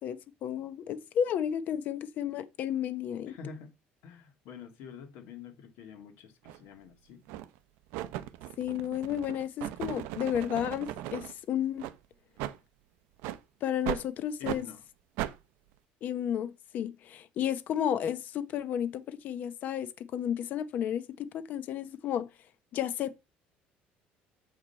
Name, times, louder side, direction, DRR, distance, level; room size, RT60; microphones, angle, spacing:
voice 1, 0.0-3.3 8.6-11.9 13.6-14.6 16.0-22.3 22.7-23.2, left 9 dB, 50° left, 0.7 m, -32 dB
voice 2, 3.3-3.7 4.0-7.2 14.4-14.8, left 6 dB, 75° left, 1.8 m, -47 dB
sound 1, 6.5-6.6 7.3-7.6 7.9-11.3 11.8-12.0 12.4-12.6 13.2-13.4 13.9-14.1 14.4-14.6 15.2-15.4, right 14 dB, 85° right, 0.5 m, -37 dB
7.6 x 5.0 x 4.3 m
cardioid pair, 145°, 4 cm